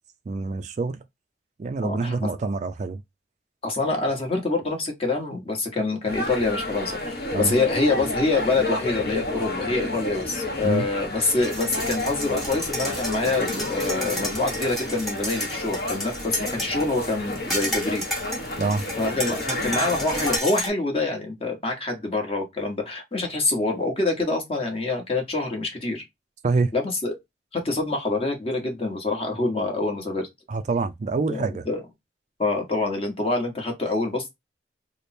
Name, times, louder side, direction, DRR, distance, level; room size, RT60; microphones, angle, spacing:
voice 1, 0.3-1.0 1.6-3.0 7.3-7.6 10.6-10.9 18.6-18.8 26.4-26.7 30.5-31.6, right 3 dB, 40° right, 0.3 m, -26 dB
voice 2, 1.8-2.2 3.6-18.0 19.0-26.0 26.7-27.1 27.5-30.3 31.3-31.8 32.4-34.3, left 3 dB, 30° left, 1.1 m, -26 dB
sound 1, 6.1-20.4, left 1 dB, 60° left, 1.2 m, -31 dB
sound 2, 11.4-20.7, equal, ahead, 1.0 m, -32 dB
3.3 x 2.1 x 4.1 m
head